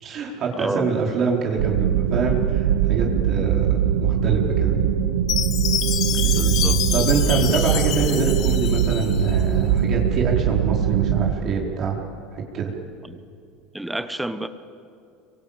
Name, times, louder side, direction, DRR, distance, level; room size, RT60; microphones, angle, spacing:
voice 1, 0.0-4.8 6.3-6.4 6.9-12.0 12.3-12.7, right 5 dB, 45° right, -1 dB, 4.5 m, -25 dB
voice 2, 0.5-1.2 3.4-3.7 6.2-6.8 13.0-13.2 13.7-14.5, right 1 dB, 5° right, 11 dB, 1.2 m, -31 dB
sound 1, 1.6-11.3, right 8 dB, 90° right, 1.4 m, -21 dB
Chime, 5.3-9.4, left 11 dB, 50° left, 1.3 m, -27 dB
26.5 x 23.5 x 8.9 m, 2.5 s
supercardioid pair, 115°, 0 cm